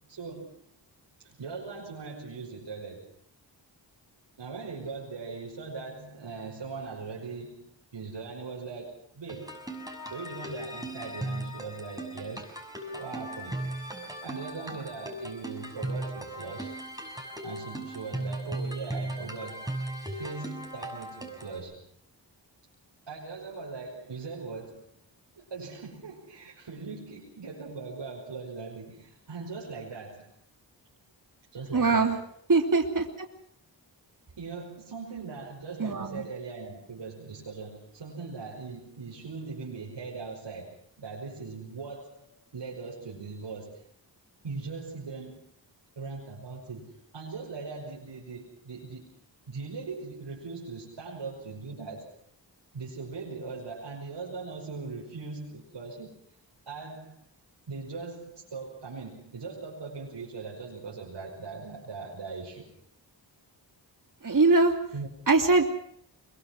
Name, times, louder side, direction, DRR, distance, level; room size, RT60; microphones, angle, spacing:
voice 1, 0.1-0.5 1.2-3.1 4.4-9.6 10.1-12.5 12.9-13.7 14.2-16.7 17.4-19.7 20.2-21.9 23.1-24.9 25.4-30.3 31.5-32.3 34.4-42.3 42.5-43.8 44.4-45.5 46.0-49.2 49.5-52.1 52.7-56.1 56.7-57.2 57.7-62.7 64.9-65.1, right 4 dB, 75° right, -4 dB, 5.8 m, -40 dB
sound 1, 9.3-21.6, right 1 dB, 10° right, 6.4 m, -37 dB
voice 2, 31.7-32.2 32.5-33.1 35.8-36.2 64.2-64.7 65.3-65.6, right 3 dB, 45° right, 4 dB, 3.0 m, -22 dB
23.5 x 22.5 x 6.1 m, 0.66 s
cardioid pair, 50°, 44 cm